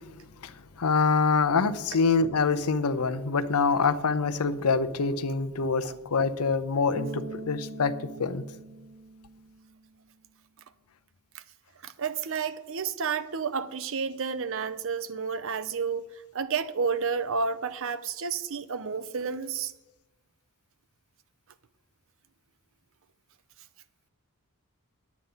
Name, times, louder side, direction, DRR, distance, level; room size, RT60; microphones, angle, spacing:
voice 1, 0.4-7.9 8.2-8.4, left 4 dB, 80° left, 0.7 m, -25 dB
Bass guitar, 6.9-10.1, right 2 dB, 90° right, 1.3 m, -42 dB
voice 2, 11.8-16.0 16.3-19.7, right 5 dB, 60° right, 0.6 m, -31 dB
10.5 x 8.3 x 5.5 m
head